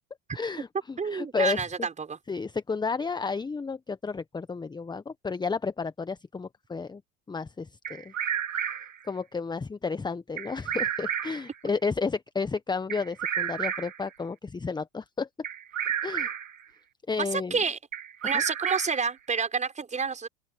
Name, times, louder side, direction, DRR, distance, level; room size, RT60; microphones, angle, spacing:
voice 1, 0.3-1.6 2.3-7.0 7.3-8.1 9.1-15.3 16.0-16.3 17.1-17.6 18.2-18.3, left 4 dB, 10° left, 1.4 m, -32 dB
voice 2, 1.0-2.2 17.2-17.8 18.2-20.3, right 5 dB, 20° right, 6.5 m, -29 dB
Bird vocalization bird call bird song, 7.8-9.0 10.4-11.5 12.9-14.1 15.4-16.6 17.9-19.1, right 9 dB, 80° right, 3.0 m, -31 dB
open air
figure-of-eight pair, 90°, 38 cm